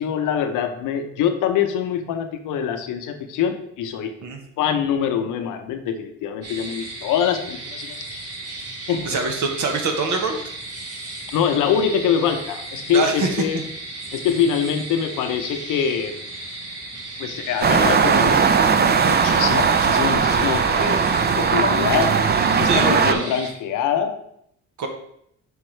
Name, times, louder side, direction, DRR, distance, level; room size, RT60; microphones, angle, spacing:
voice 1, 0.0-4.1 4.6-8.2 8.9-9.1 11.3-13.6 14.1-16.2 17.2-18.4 19.1-22.1 22.6-24.1, left 8 dB, 90° left, 7 dB, 0.8 m, -24 dB
sound 1, 6.4-23.5, right 2 dB, 55° right, 1.5 m, -35 dB
voice 2, 9.1-10.4 12.9-13.3 22.6-23.3 24.8-24.9, right 4 dB, 70° right, 3 dB, 1.1 m, -24 dB
sound 2, 17.6-23.1, right 6 dB, 35° right, 0.5 m, -18 dB
6.6 x 5.3 x 3.2 m, 0.71 s
cardioid pair, 90°, 30 cm